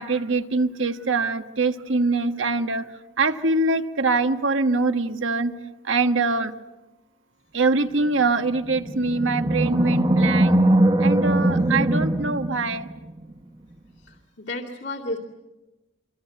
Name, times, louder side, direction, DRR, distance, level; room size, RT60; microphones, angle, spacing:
voice 1, 0.0-2.9 3.2-5.5 5.8-6.5 7.5-10.6 11.0-12.9, right 3 dB, 85° right, 8 dB, 1.4 m, -23 dB
Animal, 8.6-13.1, right 1 dB, 25° right, 0.9 m, -21 dB
voice 2, 14.5-15.2, left 2 dB, 65° left, -2 dB, 2.3 m, -31 dB
26.5 x 24.0 x 8.1 m, 1.1 s
head